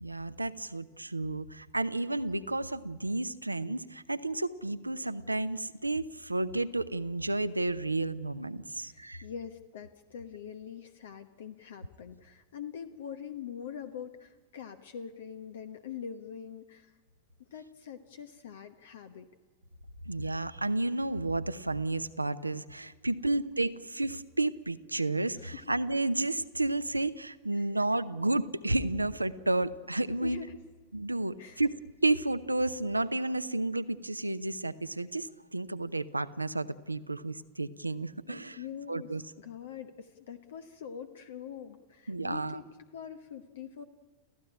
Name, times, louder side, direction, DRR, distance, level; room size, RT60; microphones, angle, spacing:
voice 1, 0.0-9.2 20.1-30.4 30.9-31.8 32.0-38.6 38.9-39.2 42.1-42.6, right 2 dB, 85° right, 13 dB, 0.8 m, -31 dB
voice 2, 8.8-17.0 17.4-19.3 23.2-23.4 25.3-25.6 27.5-27.8 30.2-30.6 31.4-31.6 38.3-43.8, left 8 dB, 60° left, 9 dB, 1.1 m, -44 dB
29.5 x 15.0 x 10.0 m, 1.4 s
figure-of-eight pair, 90°, 0 cm